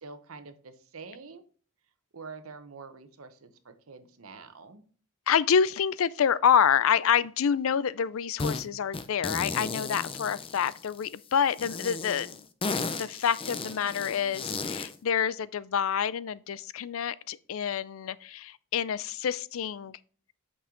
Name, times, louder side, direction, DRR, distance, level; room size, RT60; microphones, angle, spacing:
voice 1, 0.0-1.4 2.1-4.8, right 4 dB, 85° right, 0.9 m, -46 dB
voice 2, 5.3-12.4 13.0-20.0, left 7 dB, 70° left, 0.4 m, -27 dB
sound 1, 8.4-8.6 8.9-11.1 11.6-15.0, left 4 dB, 25° left, 0.6 m, -34 dB
8.5 x 5.5 x 3.8 m
head